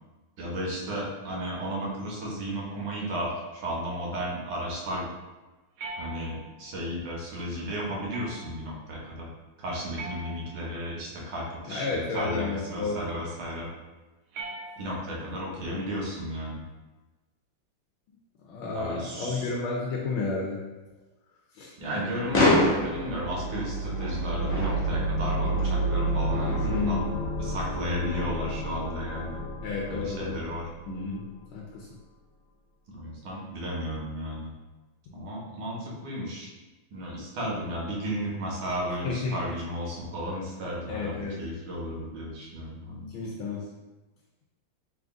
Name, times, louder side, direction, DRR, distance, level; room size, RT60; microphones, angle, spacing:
voice 1, 0.4-5.1 6.0-9.3 9.6-13.7 14.8-16.6 18.8-19.5 21.8-27.0 27.4-29.4 29.8-30.6 32.9-34.5 35.1-36.5 36.9-43.1, equal, 65° right, -3 dB, 1.4 m, -34 dB
sound 1, 5.8-6.7 8.1-8.7 10.0-10.8 12.1-12.9 14.3-15.2, right 3 dB, 85° right, 1.5 m, -41 dB
voice 2, 11.7-13.1 15.5-15.9 18.1-18.2 18.4-20.6 21.5-21.7 26.6-27.2 29.6-30.5 30.9-31.9 39.0-39.4 40.9-41.4 43.1-43.7, left 4 dB, 85° left, -2 dB, 1.4 m, -32 dB
sound 2, 21.8-26.9, left 1 dB, 35° left, 0.9 m, -28 dB
sound 3, 22.7-31.3, right 2 dB, 65° left, 1.5 m, -31 dB
3.8 x 2.5 x 3.5 m, 1.2 s
omnidirectional pair, 2.2 m